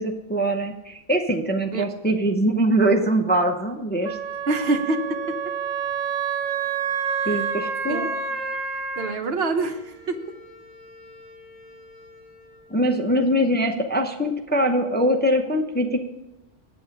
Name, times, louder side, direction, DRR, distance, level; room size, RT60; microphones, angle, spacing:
voice 1, 0.0-4.2 7.3-8.1 12.7-16.0, right 1 dB, 15° left, 2 dB, 0.4 m, -22 dB
Wind instrument woodwind instrument, 4.0-9.2, right 6 dB, 80° right, 1.1 m, -28 dB
voice 2, 4.5-5.0 5.3-5.4 7.2-7.3 7.9-8.1 9.0-10.2, right 3 dB, 55° right, 7 dB, 1.0 m, -25 dB
Wind instrument woodwind instrument 2, 8.9-13.7, left 1 dB, 35° left, 4.2 m, -50 dB
8.6 x 7.8 x 5.2 m, 0.99 s
omnidirectional pair, 1.3 m